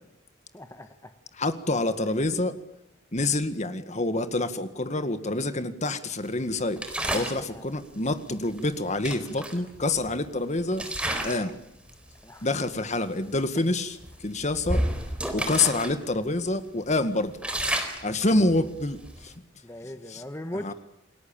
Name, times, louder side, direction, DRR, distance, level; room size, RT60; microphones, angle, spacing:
voice 1, 0.5-1.1 7.5-7.6 11.4-11.5 12.2-12.5 19.6-20.7, left 1 dB, 15° left, 1.3 m, -39 dB
voice 2, 1.4-2.6 3.1-6.8 7.1-10.9 11.2-11.5 12.4-14.8 15.3-17.4 18.0-19.3 20.1-20.2 20.5-20.7, left 2 dB, 35° left, 1.8 m, -27 dB
sound 1, 6.8-7.4 8.6-8.7 9.0-10.2 10.7-11.5 11.9-12.1 12.8-12.9 13.3-13.5 14.0-15.9 16.3-16.4 16.8-19.3, right 1 dB, 5° right, 4.0 m, -31 dB
29.0 x 21.0 x 8.9 m
head